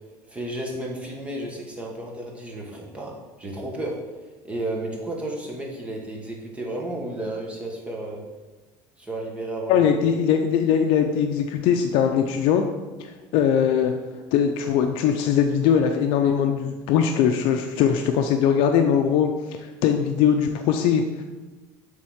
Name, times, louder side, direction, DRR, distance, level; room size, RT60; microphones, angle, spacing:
voice 1, 0.3-4.0 4.4-8.2 9.0-9.9 13.8-13.9, right 1 dB, 15° right, -1 dB, 1.4 m, -32 dB
voice 2, 9.7-12.6 13.0-13.9 14.3-21.2, left 8 dB, 70° left, 5 dB, 0.5 m, -21 dB
7.5 x 3.6 x 6.3 m, 1.2 s
cardioid pair, 160°, 10 cm